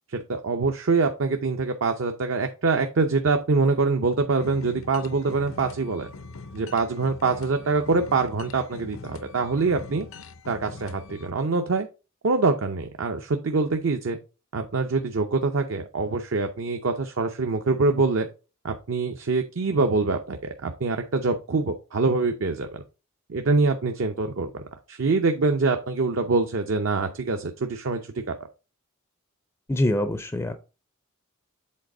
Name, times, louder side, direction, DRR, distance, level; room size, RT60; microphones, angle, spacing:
voice 1, 0.1-6.1 6.5-10.1 10.5-11.9 12.2-14.2 14.5-18.3 18.6-22.8 23.3-24.5 24.9-28.3, right 3 dB, 70° right, 5 dB, 0.6 m, -24 dB
sound 1, 4.4-11.3, left 3 dB, 70° left, 0.6 m, -43 dB
voice 2, 29.7-30.5, left 1 dB, 15° left, 9 dB, 0.4 m, -24 dB
7.5 x 4.1 x 3.8 m, 0.32 s
head